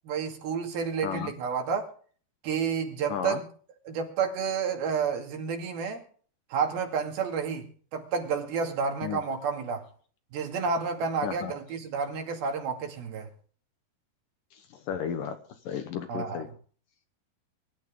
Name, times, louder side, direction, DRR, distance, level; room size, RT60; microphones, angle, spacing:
voice 1, 0.1-1.9 2.4-3.5 3.9-6.0 6.5-9.9 10.3-13.3 16.1-16.4, right 6 dB, 70° right, 4.0 m, -30 dB
voice 2, 3.1-3.4 9.0-9.2 11.2-11.5 14.5-15.4 15.7-16.5, left 8 dB, 65° left, 2.4 m, -33 dB
23.5 x 11.5 x 3.7 m
omnidirectional pair, 4.7 m